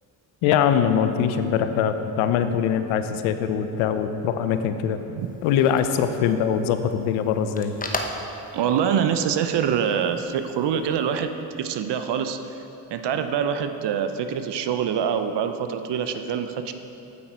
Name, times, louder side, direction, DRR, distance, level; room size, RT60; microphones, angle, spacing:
voice 1, 0.4-5.0 5.4-7.7, left 8 dB, 85° left, 9 dB, 0.6 m, -22 dB
sound 1, 5.2-11.2, left 2 dB, 20° left, 1.0 m, -38 dB
voice 2, 8.5-11.3 11.6-12.4 12.9-16.7, right 8 dB, 60° right, 9 dB, 0.8 m, -25 dB
8.6 x 8.6 x 4.4 m, 3.0 s
supercardioid pair, 55°, 47 cm